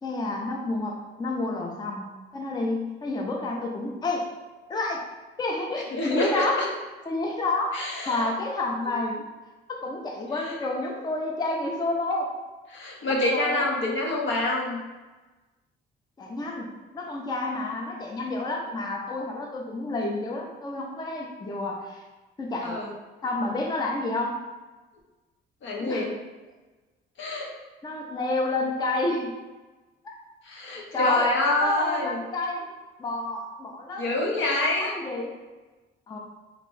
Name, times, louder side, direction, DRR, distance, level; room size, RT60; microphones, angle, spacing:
voice 1, 0.0-4.3 4.7-5.0 5.4-6.6 7.1-7.7 8.1-9.2 9.7-12.3 13.1-13.7 16.2-16.7 16.9-22.0 22.4-22.8 23.2-24.4 25.8-26.1 27.8-29.4 30.0-30.2 30.9-31.3 31.6-32.7 33.0-35.4 36.1-36.2, left 2 dB, 20° left, 0 dB, 0.4 m, -29 dB
voice 2, 5.9-6.7 7.7-8.3 10.3-10.6 12.7-14.8 22.6-22.9 25.6-26.1 27.2-27.5 30.4-32.2 34.0-34.9, left 2 dB, 70° left, -2 dB, 0.7 m, -26 dB
2.8 x 2.2 x 3.0 m, 1.2 s
cardioid pair, 90°, 20 cm